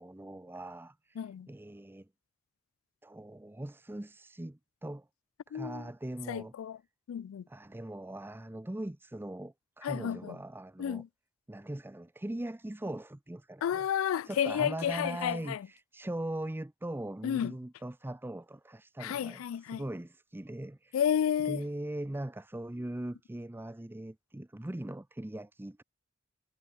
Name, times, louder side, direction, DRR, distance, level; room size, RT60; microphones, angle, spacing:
voice 1, 0.0-2.1 3.0-5.1 5.5-6.5 7.5-11.0 11.5-13.9 14.2-21.0 21.4-25.8, right 1 dB, 10° right, 0.5 m, -40 dB
voice 2, 1.2-1.5 5.5-5.8 6.3-6.8 7.1-7.4 9.8-10.4 10.8-11.1 13.6-15.7 17.2-17.5 19.0-19.8 20.9-21.6, left 9 dB, 80° left, 0.3 m, -31 dB
head